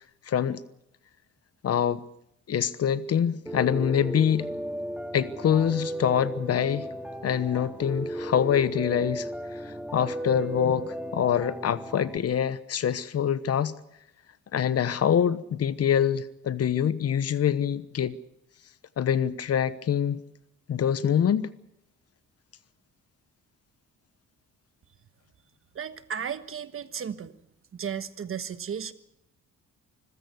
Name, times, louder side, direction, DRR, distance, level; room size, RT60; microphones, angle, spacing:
voice 1, 0.3-0.6 1.6-2.0 2.5-4.5 5.1-6.9 7.2-9.3 9.6-13.7 14.5-18.1 19.0-20.2 20.7-21.5, left 8 dB, 55° left, 1.1 m, -25 dB
Piano, 3.5-12.2, equal, 5° right, 2.1 m, -35 dB
voice 2, 25.7-27.3 27.7-28.9, right 7 dB, 45° right, 1.4 m, -34 dB
25.0 x 15.5 x 8.1 m
cardioid pair, 90°, 30 cm